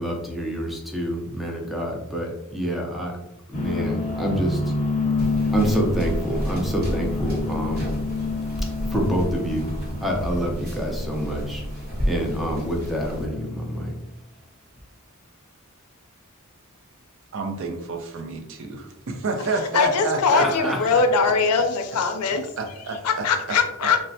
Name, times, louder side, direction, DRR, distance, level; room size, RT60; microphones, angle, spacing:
voice 1, 0.0-3.1 3.5-4.7 5.5-7.9 8.8-9.7 10.0-11.6 12.0-13.9 20.3-20.9, equal, ahead, 0 dB, 0.4 m, -27 dB
sound 1, 3.5-13.8, left 3 dB, 35° left, 0.8 m, -29 dB
sound 2, 5.2-13.3, equal, 45° right, 1.0 m, -31 dB
voice 2, 17.3-21.4 22.6-23.9, right 3 dB, 60° right, 5 dB, 0.5 m, -30 dB
voice 3, 19.7-22.4 23.0-24.0, left 5 dB, 85° left, 7 dB, 0.4 m, -21 dB
3.2 x 2.0 x 2.6 m, 0.85 s
head